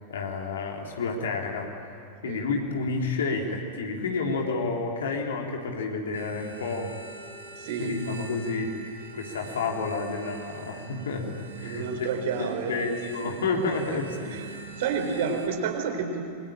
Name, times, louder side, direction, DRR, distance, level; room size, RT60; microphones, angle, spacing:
voice 1, 0.1-1.7 2.2-6.9 7.8-11.9 12.4-14.4, left 3 dB, 65° left, 1 dB, 3.8 m, -30 dB
sound 1, 6.1-15.5, right 5 dB, 75° right, 6.2 m, -43 dB
voice 2, 7.6-8.0 11.6-12.8 14.3-14.4 14.8-16.2, right 5 dB, 55° right, 5 dB, 4.2 m, -30 dB
27.5 x 22.5 x 9.0 m, 2.5 s
figure-of-eight pair, 90°, 0 cm